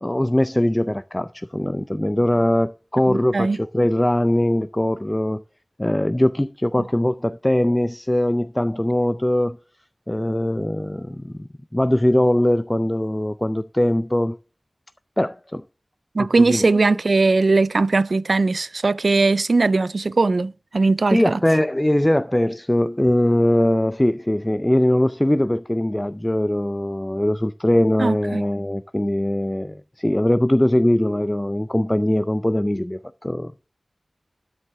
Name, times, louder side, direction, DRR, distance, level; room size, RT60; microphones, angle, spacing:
voice 1, 0.0-5.4 5.8-9.6 10.1-14.4 15.2-15.6 16.2-16.7 21.1-33.7, left 1 dB, 15° left, 0.4 m, -21 dB
voice 2, 3.1-3.6 16.1-21.4 28.0-28.4, right 3 dB, 75° right, 0.4 m, -19 dB
12.5 x 7.3 x 3.4 m
wide cardioid pair, 60°, 0 cm